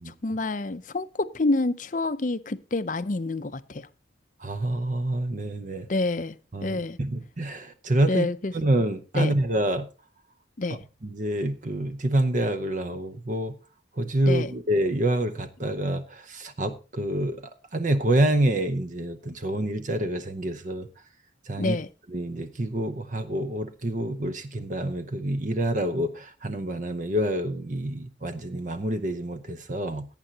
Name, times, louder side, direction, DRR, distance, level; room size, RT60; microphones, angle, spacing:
voice 1, 0.1-3.9 5.9-6.4 6.6-7.0 8.1-8.5 9.1-9.3 10.6-10.8 14.3-14.5 21.6-21.9, left 2 dB, 40° left, 0.6 m, -28 dB
voice 2, 4.4-5.9 6.5-8.3 8.5-9.9 11.0-13.5 14.0-17.4 17.7-20.9 21.5-21.8 22.1-30.1, right 1 dB, 40° right, 0.8 m, -27 dB
17.5 x 9.0 x 2.8 m
head